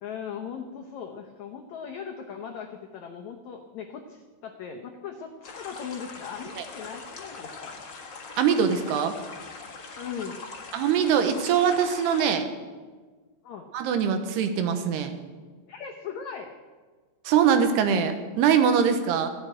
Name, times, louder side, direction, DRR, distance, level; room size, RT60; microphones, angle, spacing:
voice 1, 0.0-7.8 10.0-10.5 13.4-13.7 15.7-16.5, left 7 dB, 85° left, 3 dB, 1.6 m, -39 dB
sound 1, 5.4-12.2, left 4 dB, 60° left, 1.2 m, -42 dB
voice 2, 8.4-9.1 10.7-12.5 13.7-15.2 17.2-19.3, right 7 dB, 85° right, 7 dB, 3.2 m, -23 dB
15.0 x 8.8 x 8.9 m, 1.4 s
omnidirectional pair, 4.6 m